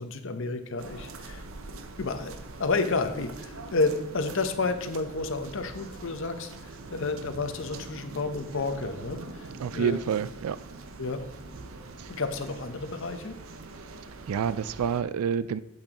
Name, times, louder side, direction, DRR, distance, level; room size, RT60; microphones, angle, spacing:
voice 1, 0.0-1.4 2.0-2.3 2.6-10.0 11.0-11.2 12.1-13.4, left 3 dB, 60° left, 0.8 m, -31 dB
sound 1, 0.8-15.0, right 3 dB, 65° right, 0.7 m, -43 dB
voice 2, 9.6-10.6 12.0-12.1 14.3-15.6, right 7 dB, 80° right, 0.3 m, -28 dB
8.7 x 8.1 x 2.9 m
head